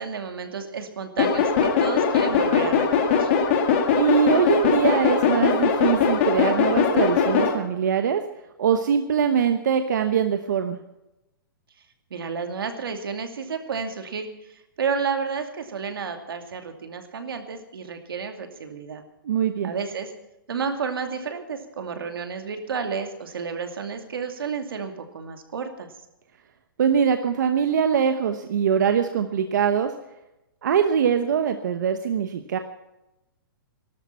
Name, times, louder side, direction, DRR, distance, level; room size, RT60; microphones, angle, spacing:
voice 1, 0.0-2.9 3.1-3.3 12.1-19.0 19.6-20.1 20.5-25.9, right 5 dB, 80° right, 6 dB, 2.5 m, -31 dB
sound 1, 1.2-7.5, left 6 dB, 35° left, 2.1 m, -21 dB
voice 2, 4.0-8.2 8.6-10.8 19.2-19.7 26.8-29.9 30.6-32.6, right 7 dB, 55° right, 7 dB, 1.0 m, -22 dB
18.5 x 12.5 x 5.9 m, 0.93 s
hypercardioid pair, 175°, 12 cm